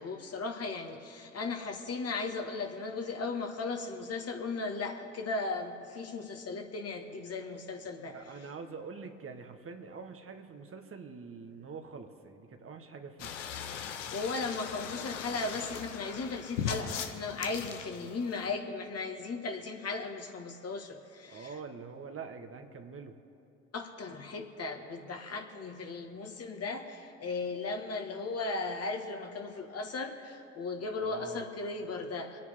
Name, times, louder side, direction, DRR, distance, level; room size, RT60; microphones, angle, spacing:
voice 1, 0.0-8.4 14.1-21.6 23.7-32.4, left 3 dB, 40° left, 3 dB, 1.9 m, -37 dB
voice 2, 8.1-13.4 21.3-23.1 31.0-31.4, right 5 dB, 35° right, 5 dB, 1.5 m, -45 dB
sound 1, 13.2-18.5, left 8 dB, 75° left, 1.1 m, -39 dB
25.5 x 9.5 x 3.8 m, 2.8 s
figure-of-eight pair, 50°, 37 cm